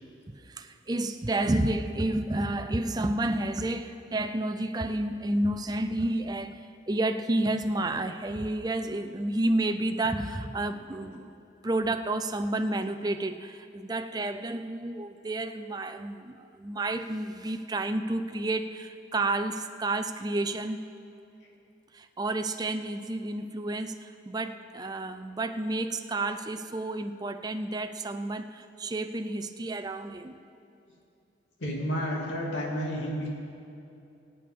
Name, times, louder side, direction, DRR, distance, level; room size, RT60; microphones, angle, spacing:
voice 1, 0.3-11.4 11.6-20.8 21.9-30.4, right 2 dB, 20° right, 0.5 m, -30 dB
voice 2, 31.6-33.3, equal, 80° left, 2.6 m, -31 dB
23.0 x 8.5 x 3.7 m
head